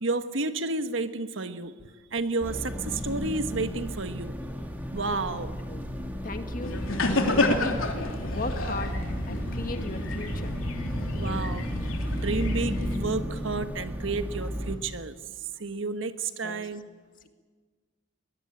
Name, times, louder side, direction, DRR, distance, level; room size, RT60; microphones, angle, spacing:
voice 1, 0.0-1.8 2.1-4.4 4.9-5.6 11.1-11.7 12.1-15.2 15.6-16.8, right 3 dB, 70° right, 10 dB, 1.3 m, -31 dB
sound 1, 2.4-14.8, equal, 10° right, 2.1 m, -34 dB
voice 2, 6.2-6.8 7.1-7.9 8.3-8.9 9.3-10.9 16.4-16.7, left 2 dB, 40° left, 7 dB, 1.7 m, -37 dB
sound 2, 6.6-13.0, left 2 dB, 85° left, 3.1 m, -29 dB
21.5 x 21.5 x 8.8 m, 1.5 s
head